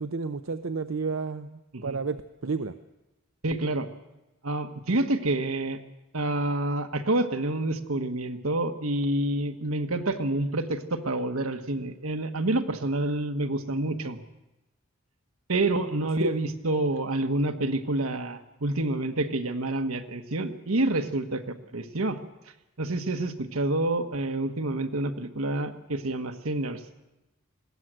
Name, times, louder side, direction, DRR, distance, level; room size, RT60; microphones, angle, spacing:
voice 1, 0.0-2.7 16.2-16.3, right 4 dB, 70° right, 10 dB, 0.7 m, -31 dB
voice 2, 3.4-3.9 4.4-5.8 6.1-14.2 15.5-22.2 22.8-26.8, right 2 dB, 85° right, 7 dB, 1.5 m, -28 dB
20.5 x 17.5 x 7.8 m, 0.99 s
head